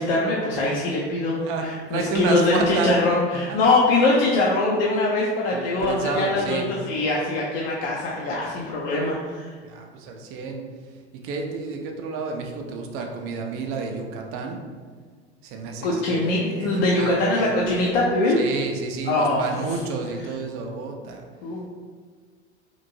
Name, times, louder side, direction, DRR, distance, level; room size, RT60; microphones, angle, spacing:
voice 1, 0.0-9.5 15.8-18.4 19.0-19.8 20.1-20.4 21.4-21.7, left 2 dB, 55° left, -3 dB, 0.6 m, -23 dB
voice 2, 1.4-3.7 5.5-6.7 9.7-10.6 11.2-14.6 15.5-17.5 18.4-21.2, right 4 dB, 40° right, 2 dB, 0.5 m, -30 dB
2.9 x 2.5 x 2.7 m, 1.6 s
hypercardioid pair, 85°, 34 cm